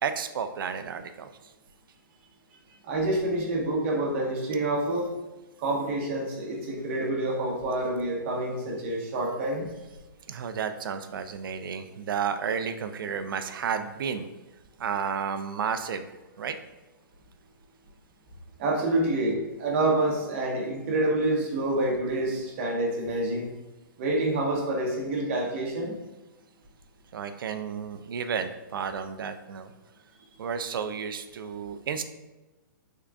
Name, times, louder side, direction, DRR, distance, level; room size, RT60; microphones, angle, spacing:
voice 1, 0.0-1.5 10.3-14.3 14.8-16.1 16.4-16.6 27.1-29.7 30.4-32.0, right 7 dB, 80° right, 9 dB, 0.4 m, -32 dB
voice 2, 2.8-5.1 5.6-9.7 18.6-23.5 24.0-25.9, right 2 dB, 35° right, -2 dB, 0.9 m, -27 dB
3.6 x 2.3 x 3.4 m, 1.1 s
hypercardioid pair, 160°, 11 cm